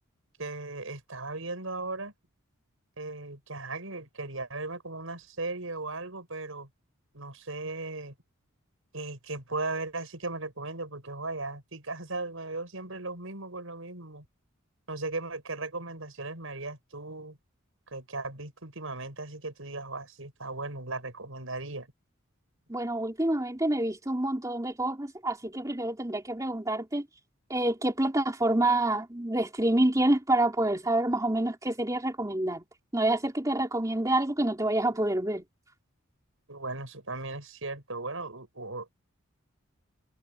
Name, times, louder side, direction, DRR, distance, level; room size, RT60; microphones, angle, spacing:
voice 1, 0.4-2.1 3.0-6.7 7.1-8.1 8.9-14.2 14.9-17.4 17.9-21.9 36.5-38.9, right 2 dB, 70° right, 6.2 m, -37 dB
voice 2, 22.7-27.1 27.5-32.6 32.9-35.4, right 1 dB, 15° right, 3.2 m, -27 dB
head